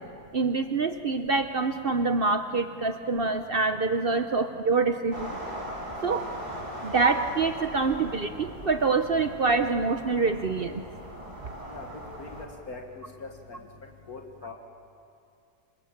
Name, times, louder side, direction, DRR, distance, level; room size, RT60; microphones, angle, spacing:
voice 1, 0.3-5.4 6.0-6.3 6.8-10.8, right 4 dB, 45° right, 8 dB, 0.8 m, -26 dB
sound 1, 5.1-12.5, right 1 dB, 25° right, 3.4 m, -39 dB
voice 2, 12.2-13.3 14.1-14.5, left 3 dB, 65° left, 1 dB, 2.3 m, -41 dB
27.0 x 25.5 x 7.2 m, 2.6 s
omnidirectional pair, 1.7 m